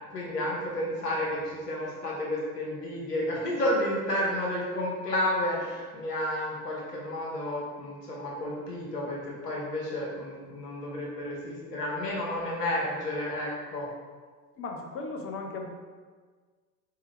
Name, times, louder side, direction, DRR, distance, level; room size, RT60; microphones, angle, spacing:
voice 1, 0.1-13.9, left 1 dB, 85° left, -3 dB, 1.4 m, -31 dB
voice 2, 14.6-15.7, left 3 dB, 30° left, 2 dB, 0.8 m, -36 dB
4.3 x 3.6 x 3.4 m, 1.5 s
hypercardioid pair, 85°, 47 cm